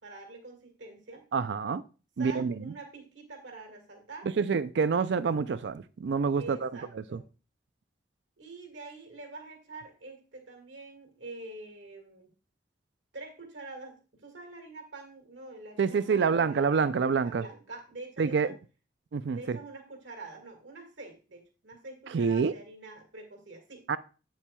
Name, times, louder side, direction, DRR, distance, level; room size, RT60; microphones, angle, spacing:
voice 1, 0.0-1.3 2.2-4.3 6.4-7.3 8.4-12.3 13.1-14.0 14.2-16.9 17.2-18.5 19.3-23.9, right 3 dB, 90° right, 1.8 m, -46 dB
voice 2, 1.3-1.8 2.2-2.7 4.4-6.7 7.1-7.2 15.8-17.4 18.2-18.5 19.1-19.6 22.1-22.5 23.9-24.0, right 5 dB, 70° right, 0.4 m, -27 dB
8.2 x 7.2 x 2.3 m
head